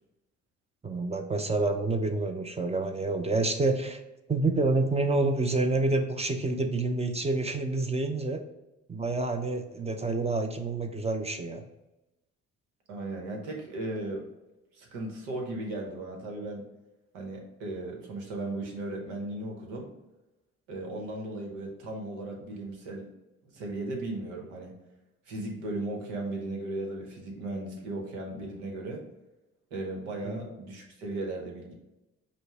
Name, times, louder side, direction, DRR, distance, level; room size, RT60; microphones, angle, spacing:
voice 1, 0.8-4.0 4.3-8.4 8.9-11.6 30.2-30.4, right 2 dB, 20° right, 6 dB, 0.6 m, -28 dB
voice 2, 12.9-14.2 14.7-16.6 17.1-19.9 20.7-23.1 23.4-24.7 25.3-29.0 29.7-31.7, right 2 dB, 85° right, 1 dB, 1.0 m, -36 dB
5.1 x 2.1 x 4.8 m, 0.99 s
hypercardioid pair, 55°, 35 cm